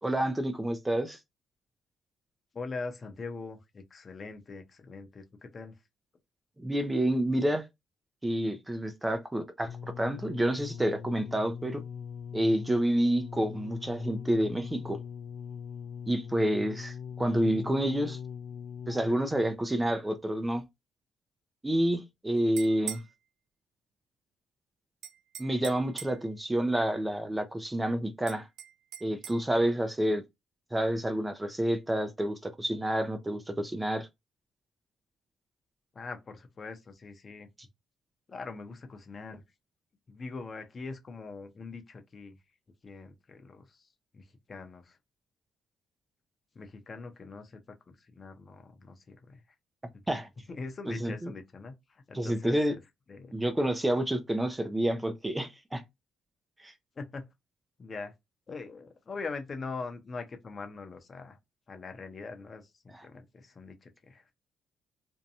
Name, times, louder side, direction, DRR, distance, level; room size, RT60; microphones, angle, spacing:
voice 1, 0.0-1.2 6.6-7.7 8.2-11.8 12.3-15.0 16.1-18.2 18.9-20.6 21.6-23.0 25.4-28.5 29.0-30.2 30.7-34.1 50.1-50.3 50.9-51.3 52.1-52.7 53.3-55.8 56.6-56.7 62.9-63.1, right 1 dB, 15° right, 0.4 m, -29 dB
voice 2, 2.5-5.8 35.9-37.5 38.3-39.4 40.1-42.4 42.8-43.9 44.1-45.0 46.5-47.6 47.9-49.4 50.5-52.8 53.1-53.3 57.0-57.3 57.8-58.1 58.5-61.4 61.7-64.3, left 4 dB, 40° left, 0.7 m, -42 dB
sound 1, 9.7-19.8 20.6-20.7, left 7 dB, 75° left, 0.4 m, -41 dB
sound 2, 22.4-23.1 25.0-26.3 28.3-29.4, right 9 dB, 80° right, 0.3 m, -42 dB
2.6 x 2.2 x 2.7 m
cardioid pair, 90°, 0 cm